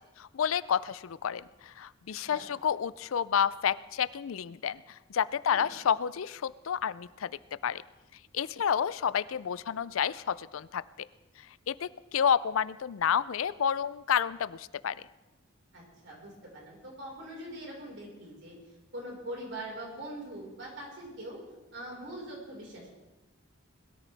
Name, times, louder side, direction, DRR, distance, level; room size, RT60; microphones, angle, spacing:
voice 1, 0.2-4.8 5.1-7.3 7.6-7.8 8.3-10.8 11.7-15.0, left 8 dB, 90° left, 17 dB, 0.4 m, -30 dB
voice 2, 15.7-18.6 18.9-21.4 21.7-22.9, right 1 dB, 60° right, -2 dB, 4.9 m, -42 dB
21.0 x 13.0 x 3.4 m, 1.1 s
head